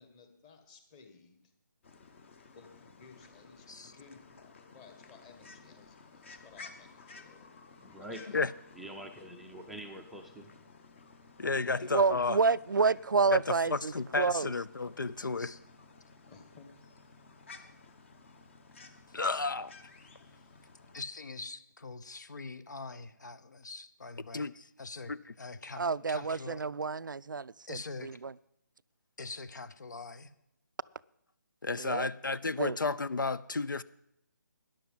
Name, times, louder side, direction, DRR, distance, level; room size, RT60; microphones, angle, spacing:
voice 1, 0.0-1.5 2.5-7.5 8.0-8.4 11.8-12.0 16.3-16.7, left 5 dB, 20° left, 1.6 m, -56 dB
sound 1, 1.8-21.0, left 4 dB, 40° left, 1.3 m, -55 dB
voice 2, 7.8-8.2 8.8-10.5, right 1 dB, ahead, 0.5 m, -45 dB
voice 3, 11.4-12.4 13.3-15.5 19.1-19.7 24.3-24.6 25.1-25.2 31.6-33.8, left 3 dB, 85° left, 0.5 m, -32 dB
voice 4, 11.9-14.5 25.8-28.3 31.8-32.1 32.6-32.8, right 4 dB, 85° right, 0.4 m, -29 dB
voice 5, 20.9-24.5 24.8-26.6 27.7-28.2 29.2-30.3, left 3 dB, 65° left, 0.9 m, -44 dB
13.0 x 10.5 x 5.7 m
figure-of-eight pair, 155°, 10 cm